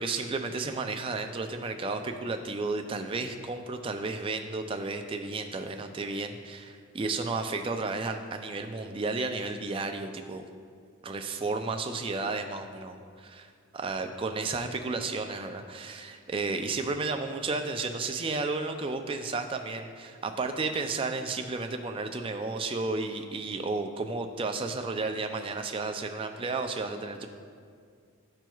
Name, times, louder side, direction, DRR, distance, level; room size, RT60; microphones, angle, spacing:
voice 1, 0.0-10.4 11.0-27.3, right 3 dB, 25° right, 6 dB, 0.3 m, -33 dB
12.5 x 4.5 x 2.3 m, 2.2 s
head